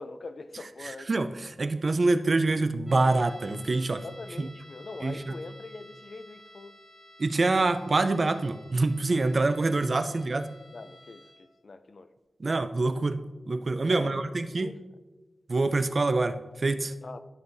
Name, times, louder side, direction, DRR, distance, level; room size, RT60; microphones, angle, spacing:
voice 1, 0.0-1.1 4.0-6.8 10.0-10.2 10.7-12.1 13.8-14.8 17.0-17.2, left 3 dB, 55° left, 0.5 m, -43 dB
voice 2, 0.8-4.0 4.4-4.5 5.0-5.3 7.2-10.5 12.4-13.2 13.5-14.7 15.5-16.9, right 3 dB, 50° right, 0.5 m, -26 dB
sound 1, 2.9-11.6, equal, 35° left, 1.3 m, -53 dB
12.5 x 6.3 x 2.7 m
wide cardioid pair, 110°, 0 cm